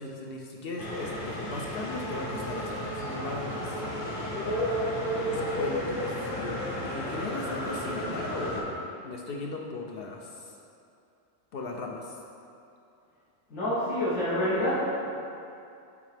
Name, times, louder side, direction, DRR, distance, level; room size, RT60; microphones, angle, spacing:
voice 1, 0.0-3.8 4.9-10.5 11.5-12.2, left 2 dB, 60° left, 0 dB, 0.6 m, -37 dB
sound 1, 0.8-8.6, equal, 45° left, 1.1 m, -32 dB
voice 2, 13.5-15.1, left 1 dB, 80° left, -10 dB, 1.5 m, -27 dB
8.3 x 3.6 x 3.3 m, 2.6 s
omnidirectional pair, 1.3 m